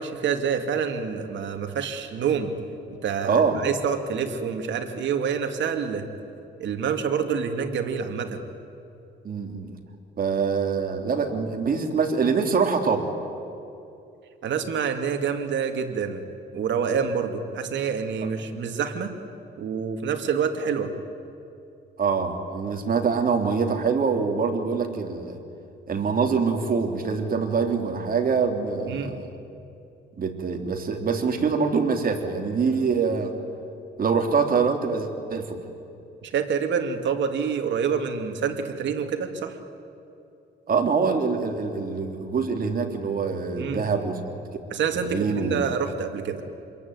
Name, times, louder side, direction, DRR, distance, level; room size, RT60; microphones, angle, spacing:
voice 1, 0.0-2.5 3.0-6.0 6.6-8.4 14.4-16.2 16.5-19.1 19.6-20.9 28.9-29.1 36.2-39.6 43.6-43.8 44.7-46.4, right 6 dB, 65° right, 5 dB, 2.5 m, -27 dB
voice 2, 3.3-3.6 9.2-9.7 10.2-13.1 22.0-25.4 25.9-29.2 30.2-33.3 34.0-35.6 40.7-44.3 45.1-45.6, right 5 dB, 45° right, 4 dB, 3.5 m, -24 dB
26.5 x 22.0 x 9.6 m, 2.7 s
cardioid pair, 90°, 20 cm